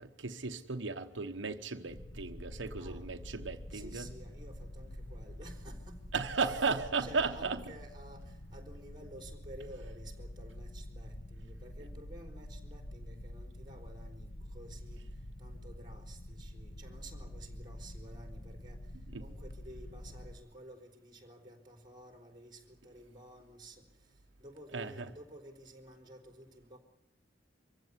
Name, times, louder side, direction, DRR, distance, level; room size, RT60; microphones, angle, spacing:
voice 1, 0.0-4.1 6.1-7.6 19.1-19.3 24.7-25.1, right 4 dB, 85° right, 1.1 m, -35 dB
sound 1, 1.9-20.3, left 1 dB, 55° left, 1.6 m, -47 dB
voice 2, 2.8-3.2 3.7-6.0 6.4-6.5 7.0-15.0 15.4-18.9 19.2-23.8 24.4-26.8, right 1 dB, 25° right, 3.9 m, -52 dB
24.5 x 15.5 x 9.7 m
head